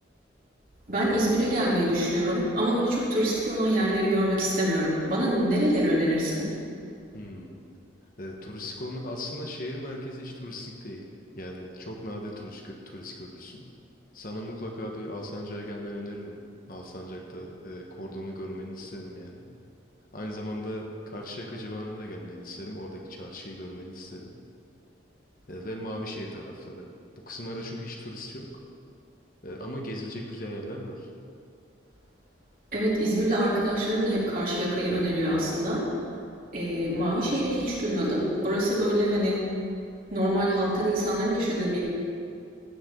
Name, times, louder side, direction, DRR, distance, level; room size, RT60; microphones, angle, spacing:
voice 1, 0.9-6.5 32.7-35.9 36.5-39.4 40.1-41.8, equal, 50° right, -7 dB, 3.4 m, -25 dB
voice 2, 7.1-7.5 8.2-11.0 11.3-13.7 14.1-16.4 16.7-19.5 20.1-24.3 25.5-26.9 27.2-28.5 29.4-31.1, equal, 50° left, 0 dB, 1.4 m, -38 dB
15.5 x 9.7 x 3.9 m, 2.4 s
head